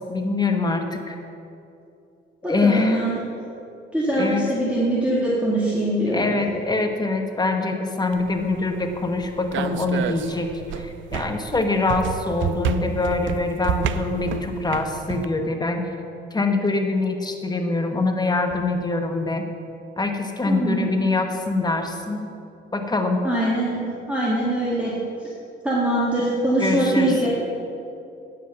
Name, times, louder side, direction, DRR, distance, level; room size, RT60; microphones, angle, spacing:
voice 1, 0.1-1.2 2.5-3.0 4.1-4.4 6.1-10.5 10.7-15.9 16.3-19.4 20.0-22.3 22.7-23.2 26.6-27.3, left 3 dB, 20° left, 4 dB, 1.1 m, -24 dB
voice 2, 2.4-3.1 3.9-6.4 20.4-20.9 23.2-23.8 24.1-24.9 25.6-27.3, right 1 dB, 5° right, -6 dB, 1.8 m, -22 dB
sound 1, 8.1-15.3, right 7 dB, 75° right, 0.5 m, -30 dB
9.0 x 7.8 x 5.7 m, 2.7 s
cardioid pair, 90°, 20 cm